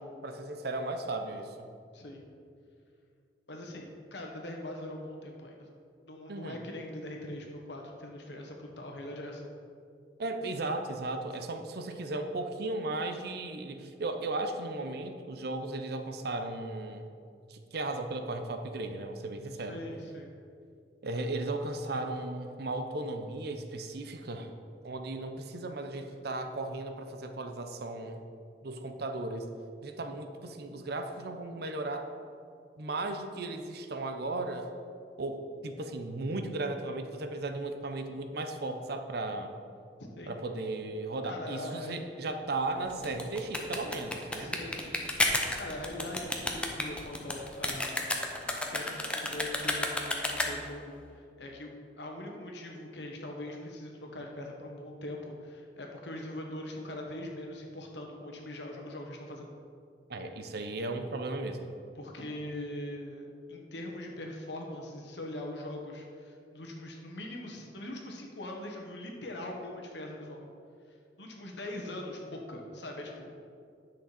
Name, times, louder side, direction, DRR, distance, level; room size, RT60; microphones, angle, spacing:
voice 1, 0.2-1.7 6.3-6.6 10.2-17.1 17.5-19.8 21.0-24.5 24.8-28.2 28.6-29.5 29.8-32.1 32.8-34.7 35.2-39.5 40.3-44.5 60.1-61.7, right 2 dB, 60° right, 7 dB, 0.7 m, -36 dB
voice 2, 1.9-2.3 3.5-5.7 6.1-9.4 19.6-20.3 40.0-40.4 41.2-42.0 44.3-48.2 48.7-51.7 52.0-59.5 62.0-70.4 71.2-73.4, left 1 dB, 75° left, 1 dB, 1.4 m, -42 dB
sound 1, 42.9-50.8, left 1 dB, 5° left, 0.7 m, -32 dB
10.0 x 6.2 x 4.2 m, 2.4 s
head